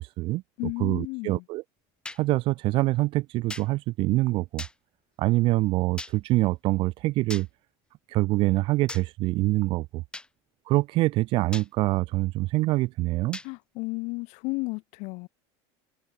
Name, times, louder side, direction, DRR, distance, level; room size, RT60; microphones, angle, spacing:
voice 1, 0.0-0.4 0.8-1.6 2.2-4.6 5.2-7.5 8.1-10.0 10.7-13.4, right 19 dB, 40° right, 0.4 m, -25 dB
voice 2, 0.6-1.4 13.4-15.3, left 28 dB, 55° left, 1.8 m, -33 dB
sound 1, 2.0-2.2 3.5-3.7 4.6-4.7 6.0-6.1 7.3-7.5 8.9-9.0 10.1-10.3 11.5-11.7 13.3-13.5, left 2 dB, 5° left, 1.1 m, -38 dB
supercardioid pair, 155°, 14 cm